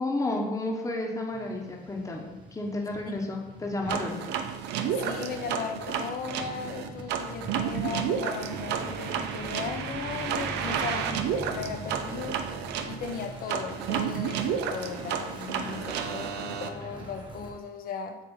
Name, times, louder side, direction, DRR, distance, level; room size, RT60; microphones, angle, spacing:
voice 1, 0.0-4.2 15.6-16.1, left 2 dB, 20° left, 0 dB, 1.2 m, -32 dB
Truck, 1.3-17.5, right 1 dB, 30° right, 1.5 m, -44 dB
sound 1, 3.9-16.7, right 7 dB, 85° right, 0.6 m, -31 dB
voice 2, 4.9-12.4 12.9-18.2, left 6 dB, 60° left, 6 dB, 0.9 m, -37 dB
8.2 x 2.8 x 5.5 m, 1.1 s
cardioid pair, 110°, 17 cm